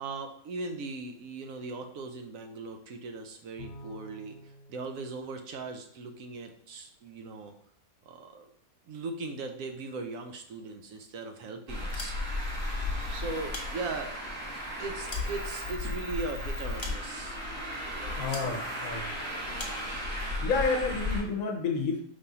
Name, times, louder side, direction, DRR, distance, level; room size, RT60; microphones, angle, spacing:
voice 1, 0.0-7.5 8.1-8.5 8.9-12.2 13.1-14.1 14.8-17.4 17.9-18.4, right 3 dB, 75° right, 5 dB, 1.0 m, -39 dB
Bowed string instrument, 3.6-6.2, left 1 dB, 60° left, 0.9 m, -50 dB
Traffic noise roadway noise, 11.7-21.2, left 1 dB, 40° right, 1.6 m, -35 dB
sound 1, 11.9-12.6 13.3-14.3 14.8-16.0 16.8-17.4 18.3-18.6 19.6-19.9, left 2 dB, 35° left, 0.4 m, -43 dB
voice 2, 18.2-19.1 20.4-22.0, left 4 dB, 75° left, 3 dB, 1.2 m, -30 dB
5.1 x 3.4 x 2.8 m, 0.62 s
omnidirectional pair, 1.5 m